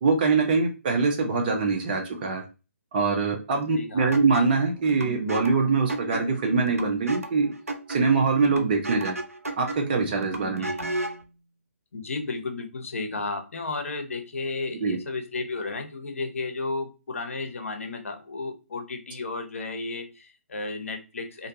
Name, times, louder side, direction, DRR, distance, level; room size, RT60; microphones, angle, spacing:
voice 1, 0.0-2.4 2.9-7.5 7.9-9.2 9.6-10.7 14.8-15.0, right 4 dB, 40° right, 3 dB, 0.6 m, -23 dB
voice 2, 3.8-4.1 10.6-10.8 11.9-21.5, left 3 dB, 65° left, 6 dB, 0.7 m, -33 dB
sound 1, 4.1-11.3, right 2 dB, 90° right, 0.5 m, -34 dB
2.5 x 2.2 x 2.7 m, 0.30 s
figure-of-eight pair, 140°, 8 cm